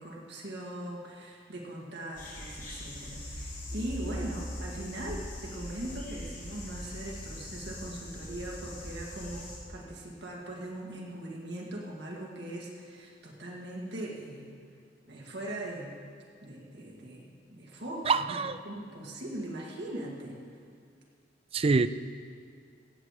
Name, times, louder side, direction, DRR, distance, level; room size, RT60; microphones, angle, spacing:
voice 1, 0.0-14.5 15.1-15.9 16.4-18.4 18.6-20.4, right 1 dB, 60° right, -2 dB, 1.9 m, -40 dB
sound 1, 2.1-9.6, equal, 45° left, 3.0 m, -41 dB
voice 2, 18.1-18.6 21.5-21.9, right 4 dB, 30° right, 12 dB, 0.3 m, -25 dB
16.5 x 8.1 x 4.9 m, 2.2 s
head